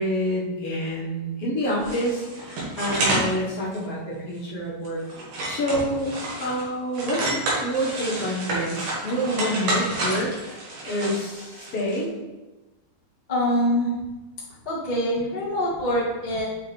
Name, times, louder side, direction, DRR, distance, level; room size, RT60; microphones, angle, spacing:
voice 1, 0.0-5.0 5.4-6.1 6.4-10.3 10.9-12.1, equal, 55° left, -6 dB, 2.0 m, -27 dB
sound 1, 1.8-3.3 3.7-3.8 4.4-4.5 4.9-6.6 6.9-12.0, right 2 dB, 85° right, 3.2 m, -29 dB
voice 2, 13.3-13.9 14.6-16.4, equal, 30° left, -7 dB, 0.8 m, -24 dB
7.0 x 4.7 x 3.3 m, 1.1 s
omnidirectional pair, 3.7 m